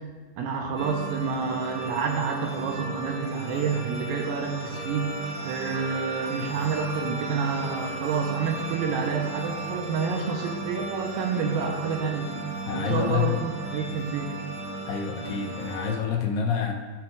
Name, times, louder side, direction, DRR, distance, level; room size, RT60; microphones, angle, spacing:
voice 1, 0.4-5.1 5.5-12.3 12.7-14.3, right 5 dB, 80° right, 2 dB, 2.4 m, -28 dB
sound 1, 0.8-15.9, right 2 dB, 50° right, 1.0 m, -36 dB
voice 2, 12.7-13.3 14.9-16.7, left 7 dB, 80° left, 1 dB, 2.2 m, -27 dB
13.0 x 5.7 x 2.3 m, 1.4 s
omnidirectional pair, 4.3 m